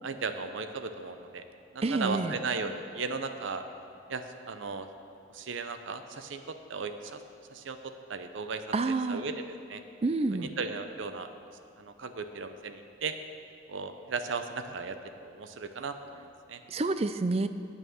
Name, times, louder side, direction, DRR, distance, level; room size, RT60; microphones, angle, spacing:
voice 1, 0.0-1.4 1.7-3.7 4.1-4.9 5.3-7.2 7.5-9.8 10.3-11.3 11.8-13.1 13.7-16.6, right 4 dB, 80° right, 9 dB, 0.6 m, -36 dB
voice 2, 1.8-2.3 8.7-9.2 10.0-10.5 16.7-17.5, right 3 dB, 30° right, 11 dB, 0.4 m, -28 dB
9.5 x 8.6 x 6.3 m, 2.5 s
head